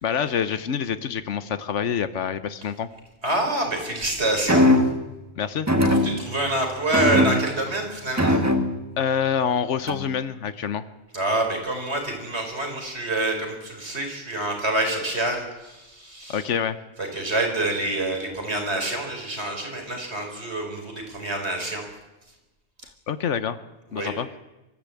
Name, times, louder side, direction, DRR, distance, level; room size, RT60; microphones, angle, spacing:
voice 1, 0.0-2.9 5.4-5.7 6.0-6.1 9.0-10.8 16.3-16.8 23.1-23.6 23.9-24.3, left 7 dB, 90° left, 12 dB, 1.2 m, -26 dB
voice 2, 3.2-4.8 6.0-8.4 11.1-16.4 17.0-21.9 23.9-24.1, right 1 dB, 65° right, 3 dB, 4.5 m, -27 dB
sound 1, 4.5-5.1 5.7-6.5 6.9-7.7 8.2-9.0 9.9-10.2, left 1 dB, 15° right, 1.8 m, -21 dB
24.0 x 14.0 x 8.4 m, 1.0 s
omnidirectional pair, 1.2 m